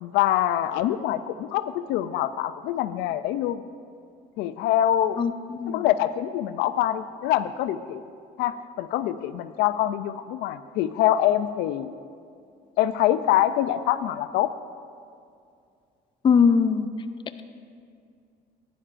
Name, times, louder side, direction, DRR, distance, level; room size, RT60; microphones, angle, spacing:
voice 1, 0.0-3.6 4.4-5.2 5.7-8.0 8.4-11.9 12.8-14.5, left 12 dB, 90° left, 12 dB, 0.4 m, -25 dB
voice 2, 5.2-5.8 16.2-16.9, left 6 dB, 30° left, 10 dB, 0.4 m, -21 dB
15.0 x 10.0 x 2.5 m, 2.4 s
cardioid pair, 110°, 17 cm